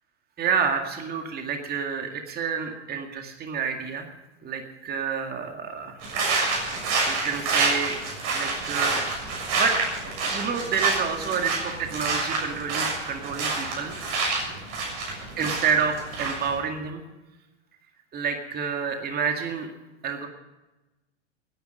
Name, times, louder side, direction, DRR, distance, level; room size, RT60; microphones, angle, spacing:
voice 1, 0.4-4.1 4.4-6.0 7.0-8.0 8.3-9.0 9.5-9.8 10.2-14.0 15.4-17.0 18.1-19.7 20.0-20.3, right 6 dB, 25° right, 4 dB, 2.1 m, -29 dB
sound 1, 6.0-16.6, right 3 dB, 50° right, 7.0 m, -28 dB
17.5 x 10.5 x 6.5 m, 1.1 s
hypercardioid pair, 100°, 35 cm